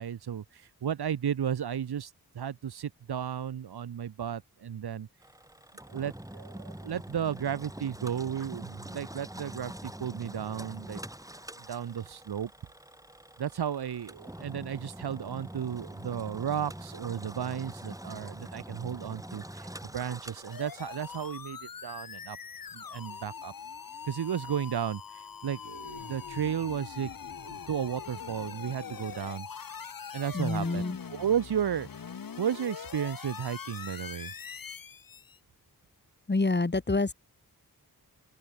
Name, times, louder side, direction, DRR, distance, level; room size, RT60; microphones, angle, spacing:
voice 1, 0.0-5.1 5.9-11.0 11.6-12.5 13.4-22.4 22.7-23.5 24.1-27.1 27.4-29.5 30.1-30.8 31.1-32.1 32.4-34.3, right 9 dB, 85° right, 1.1 m, -34 dB
Engine, 5.2-21.3, right 1 dB, 10° right, 6.1 m, -44 dB
sound 1, 20.5-35.4, left 6 dB, 65° left, 1.5 m, -43 dB
voice 2, 30.3-31.0 36.3-37.1, left 3 dB, 25° left, 2.6 m, -27 dB
open air
wide cardioid pair, 105°, 38 cm